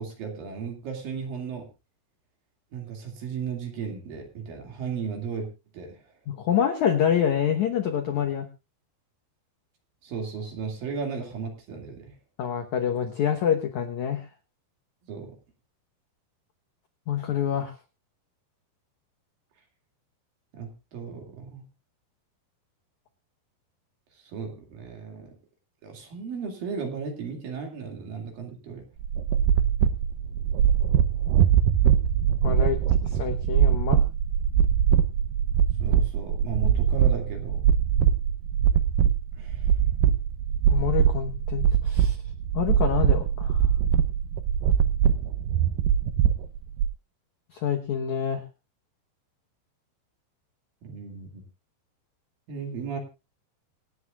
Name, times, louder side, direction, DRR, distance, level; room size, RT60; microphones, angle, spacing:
voice 1, 0.0-1.7 2.7-6.0 10.0-12.1 15.1-15.3 20.5-21.7 24.2-25.3 25.8-28.8 35.8-37.6 39.4-39.7 50.8-51.4 52.5-53.0, right 6 dB, 55° right, 3 dB, 3.8 m, -35 dB
voice 2, 6.3-8.5 12.4-14.3 17.1-17.7 32.4-34.0 40.7-42.2 42.5-43.7 47.5-48.4, left 9 dB, 80° left, 5 dB, 1.7 m, -27 dB
sound 1, 29.0-46.9, right 9 dB, 85° right, 2.0 m, -22 dB
26.5 x 9.5 x 2.4 m, 0.27 s
omnidirectional pair, 5.1 m